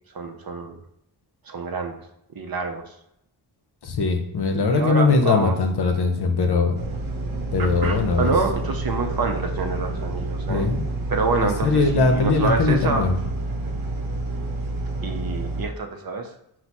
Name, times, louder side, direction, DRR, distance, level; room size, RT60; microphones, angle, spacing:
voice 1, 0.1-0.8 1.5-2.0 2.3-2.9 4.5-5.5 7.6-10.7 11.1-13.1 15.0-16.3, right 4 dB, 50° right, 4 dB, 0.6 m, -27 dB
voice 2, 3.8-6.8 7.5-8.3 10.5-10.9 11.6-13.2, left 3 dB, 55° left, 5 dB, 0.7 m, -20 dB
sound 1, 6.7-15.7, right 2 dB, 85° right, 0.8 m, -29 dB
4.5 x 2.1 x 4.2 m, 0.78 s
wide cardioid pair, 80°, 47 cm